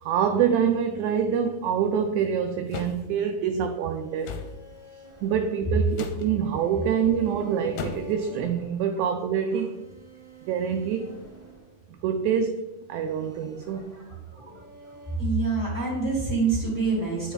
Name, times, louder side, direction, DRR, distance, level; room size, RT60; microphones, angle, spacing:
voice 1, 0.0-4.4 5.2-9.8 10.4-11.1 11.9-14.0, right 7 dB, 80° right, 6 dB, 1.7 m, -26 dB
sound 1, 2.7-3.0 4.2-4.5 5.9-6.3 7.8-8.2, left 5 dB, 75° left, 2.2 m, -35 dB
sound 2, 3.8-12.3 12.9-15.2, right 2 dB, 10° right, 1.9 m, -48 dB
voice 2, 15.1-17.3, right 4 dB, 5° left, -6 dB, 2.4 m, -25 dB
9.1 x 5.1 x 4.0 m, 1.1 s
omnidirectional pair, 3.9 m